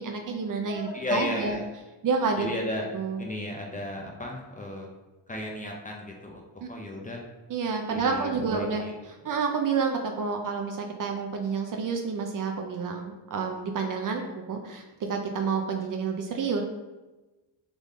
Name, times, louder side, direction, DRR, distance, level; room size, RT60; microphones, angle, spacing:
voice 1, 0.0-1.6 2.0-2.5 2.9-3.2 6.6-6.7 7.5-8.8 9.2-14.8 15.1-16.6, right 5 dB, 45° right, 3 dB, 0.5 m, -29 dB
voice 2, 0.6-1.6 2.4-2.9 3.2-4.9 5.3-6.4 6.7-7.2 7.9-8.9, left 1 dB, 15° left, 0 dB, 0.5 m, -34 dB
3.7 x 3.6 x 3.6 m, 1.1 s
cardioid pair, 140°, 48 cm